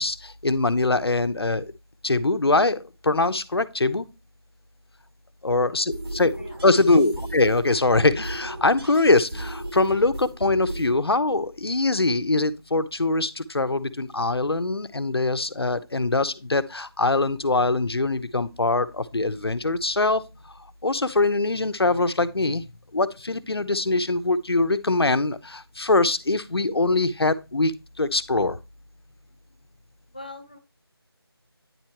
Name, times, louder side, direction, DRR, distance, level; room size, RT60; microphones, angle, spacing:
voice 1, 0.0-1.6 2.0-4.0 5.4-6.3 6.6-20.2 20.8-22.6 22.9-28.6, left 2 dB, 70° left, 0.9 m, -23 dB
sound 1, 5.9-10.9, right 1 dB, 75° right, 4.2 m, -35 dB
voice 2, 30.1-30.6, left 2 dB, 20° left, 0.6 m, -40 dB
9.6 x 4.5 x 3.0 m
figure-of-eight pair, 175°, 13 cm